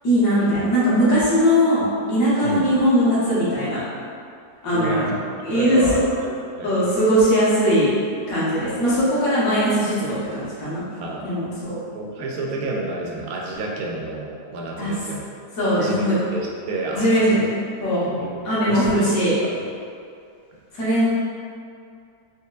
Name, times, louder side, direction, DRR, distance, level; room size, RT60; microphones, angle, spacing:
voice 1, 0.0-1.8 2.1-3.8 4.6-5.1 5.4-5.8 6.6-7.9 8.3-10.8 11.2-11.8 14.8-14.9 15.6-16.1 16.9-17.5 17.8-18.1 18.4-19.3 20.7-21.1, equal, 60° left, -11 dB, 1.6 m, -20 dB
voice 2, 4.7-5.2 5.5-6.8 11.0-11.3 11.9-15.3 15.7-17.4 18.0-19.5, right 2 dB, 70° right, -2 dB, 1.0 m, -30 dB
4.5 x 2.9 x 2.3 m, 2.4 s
omnidirectional pair, 1.7 m